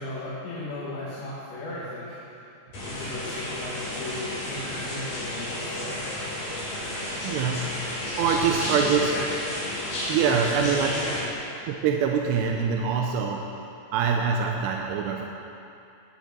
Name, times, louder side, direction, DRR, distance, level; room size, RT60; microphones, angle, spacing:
voice 1, 0.0-2.2 2.8-6.1 8.3-9.2 10.1-11.3, left 2 dB, 90° left, -9 dB, 4.5 m, -36 dB
sound 1, 2.7-11.2, left 1 dB, 50° left, 5.4 m, -32 dB
voice 2, 7.2-9.2 10.1-11.0 11.7-13.6 13.9-15.3, right 6 dB, 90° right, 1 dB, 2.8 m, -25 dB
19.0 x 10.5 x 4.5 m, 2.6 s
omnidirectional pair, 4.9 m